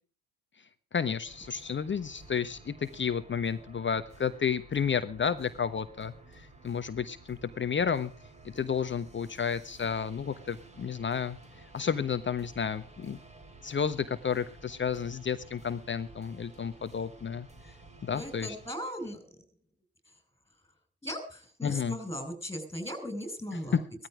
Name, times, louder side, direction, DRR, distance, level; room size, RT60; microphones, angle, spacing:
voice 1, 0.9-8.1 8.4-11.4 11.7-13.2 13.6-17.5 18.0-18.6 21.6-22.0 23.7-23.8, left 7 dB, 25° left, 11 dB, 1.1 m, -31 dB
sound 1, 1.2-18.7, right 2 dB, 15° right, 3.3 m, -53 dB
voice 2, 18.1-19.2 21.0-23.8, equal, 5° left, 8 dB, 5.7 m, -38 dB
17.0 x 13.5 x 5.0 m, 0.37 s
hypercardioid pair, 70°, 45 cm